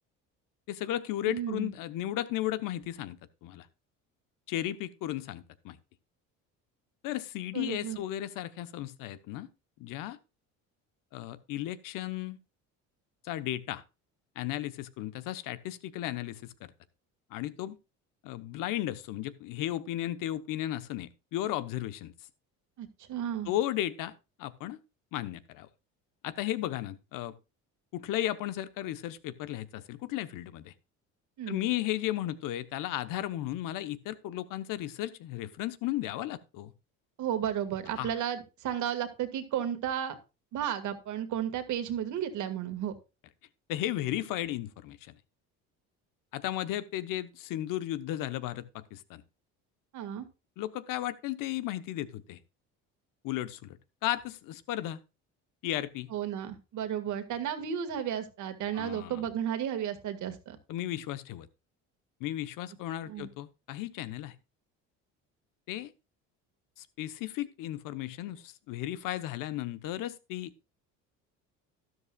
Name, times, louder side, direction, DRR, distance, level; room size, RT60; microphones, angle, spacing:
voice 1, 0.7-3.7 4.5-5.8 7.0-9.5 9.8-10.2 11.1-12.4 13.2-13.8 14.3-16.7 17.3-17.8 18.2-22.1 23.5-24.1 24.4-24.8 25.1-25.7 26.2-27.3 27.9-30.7 31.5-36.7 38.0-38.1 43.7-45.2 46.3-49.2 50.6-52.4 53.2-55.0 55.6-56.1 58.7-59.3 60.7-61.5 62.2-64.3 65.7-65.9 66.8-70.5, left 13 dB, 70° left, 1.1 m, -35 dB
voice 2, 1.3-1.7 7.5-8.0 22.8-23.5 31.4-31.6 37.2-40.2 40.5-42.9 49.9-50.3 56.1-60.6 63.1-63.3, right 9 dB, 60° right, 1.9 m, -33 dB
12.5 x 11.5 x 2.4 m
supercardioid pair, 90°, 33 cm